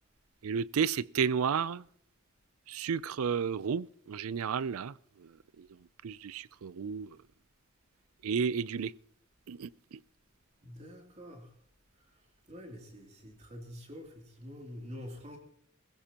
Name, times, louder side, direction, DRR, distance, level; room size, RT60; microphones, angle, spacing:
voice 1, 0.4-1.8 2.7-5.3 5.6-5.7 6.0-7.2 8.2-8.9 9.5-10.0, right 6 dB, 80° right, 0.4 m, -32 dB
voice 2, 10.6-11.5 12.5-15.4, left 1 dB, 30° right, 2.9 m, -46 dB
21.5 x 15.5 x 2.9 m
head